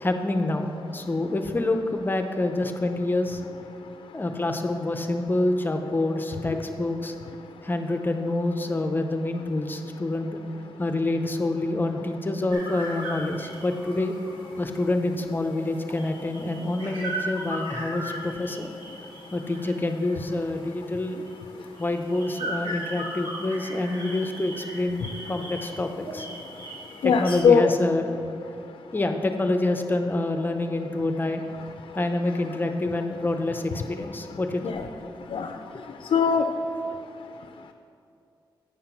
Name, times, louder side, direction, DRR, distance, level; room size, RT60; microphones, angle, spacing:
voice 1, 0.0-3.4 4.1-7.1 7.6-10.4 10.8-14.1 14.6-18.7 19.3-21.2 21.8-26.3 27.0-28.1 28.9-31.4 31.9-34.8, left 2 dB, 25° left, 6 dB, 0.6 m, -27 dB
sound 1, 12.5-27.4, right 1 dB, 65° right, 2.0 m, -38 dB
voice 2, 27.0-27.7 34.6-34.8 35.3-35.5 36.1-36.4, left 6 dB, 75° left, 6 dB, 0.4 m, -19 dB
8.9 x 5.8 x 5.8 m, 2.5 s
wide cardioid pair, 125°, 9 cm